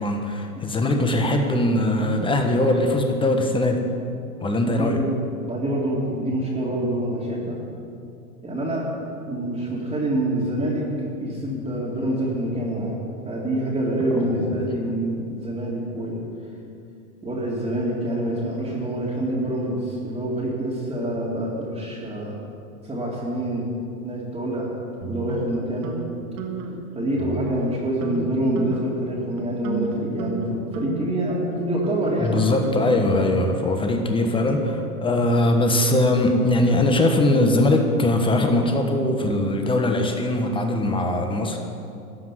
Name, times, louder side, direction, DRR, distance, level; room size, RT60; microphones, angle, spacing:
voice 1, 0.0-4.0 4.4-5.0 14.1-14.7 32.2-41.6, left 1 dB, 10° left, 4 dB, 1.3 m, -21 dB
voice 2, 4.6-5.2 5.4-7.6 8.4-8.9 9.2-10.9 11.2-13.0 13.2-16.2 17.2-22.4 22.8-23.7 24.0-24.7 25.1-25.9 26.9-32.6, right 1 dB, 10° right, -7 dB, 2.4 m, -26 dB
sound 1, 25.0-26.0 26.4-26.8 27.2-27.7 28.0-28.2 28.6-29.0 29.4-33.7, right 5 dB, 40° right, 1.6 m, -33 dB
14.0 x 5.8 x 9.6 m, 2.5 s
hypercardioid pair, 115°, 46 cm